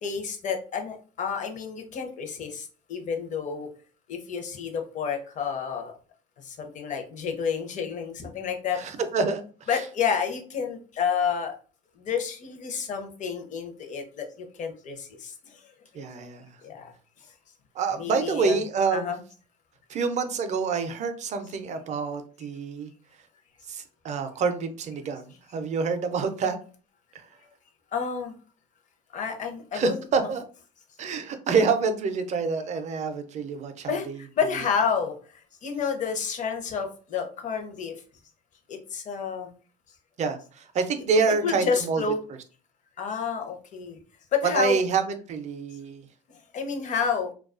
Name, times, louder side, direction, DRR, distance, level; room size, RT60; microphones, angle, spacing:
voice 1, 0.0-3.7 4.1-5.9 6.4-8.8 9.7-11.5 12.0-16.1 16.6-16.9 17.2-17.3 18.0-18.6 18.9-19.2 27.9-28.3 29.1-30.0 33.9-35.1 35.6-37.9 38.7-39.5 41.4-42.2 43.0-44.0 44.3-44.8 46.5-47.3, left 6 dB, 45° left, 5 dB, 0.6 m, -30 dB
voice 2, 8.7-9.8 15.9-16.6 17.8-19.1 19.9-22.9 23.7-26.6 27.1-27.3 29.7-30.4 31.0-34.2 40.2-42.0 44.5-45.0 45.3-46.0, right 5 dB, 40° right, 8 dB, 0.4 m, -27 dB
2.3 x 2.2 x 2.4 m, 0.39 s
supercardioid pair, 95°, 18 cm